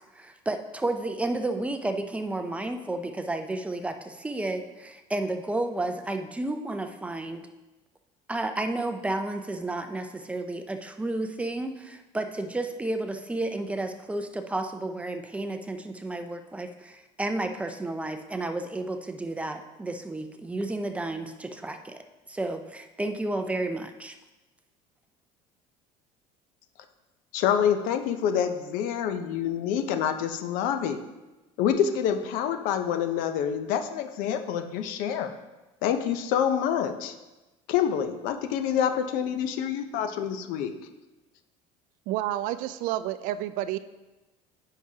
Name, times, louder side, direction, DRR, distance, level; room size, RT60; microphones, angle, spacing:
voice 1, 0.1-7.5 8.3-22.0 22.3-24.2, right 2 dB, 10° right, 7 dB, 0.5 m, -32 dB
voice 2, 27.3-31.0 31.6-35.3 35.8-37.1 37.7-40.7, left 8 dB, 70° left, 9 dB, 0.6 m, -27 dB
voice 3, 42.1-43.8, right 13 dB, 65° right, 13 dB, 0.4 m, -30 dB
9.3 x 5.7 x 2.8 m, 1.1 s
cardioid pair, 130°, 15 cm